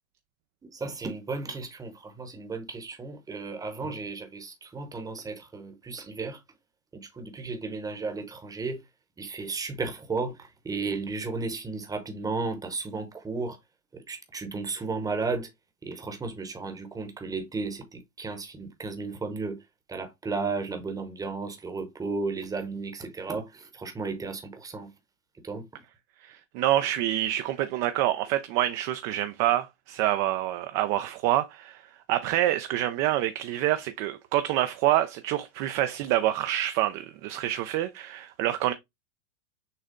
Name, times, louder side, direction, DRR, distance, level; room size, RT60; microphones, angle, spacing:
voice 1, 0.6-6.4 6.9-8.8 9.2-13.6 13.9-15.5 15.8-19.6 19.9-24.9 25.4-25.8, right 4 dB, 10° right, 0.9 m, -34 dB
voice 2, 26.2-31.8 32.1-38.7, right 13 dB, 35° right, 0.4 m, -27 dB
6.5 x 2.2 x 3.6 m
supercardioid pair, 140°, 37 cm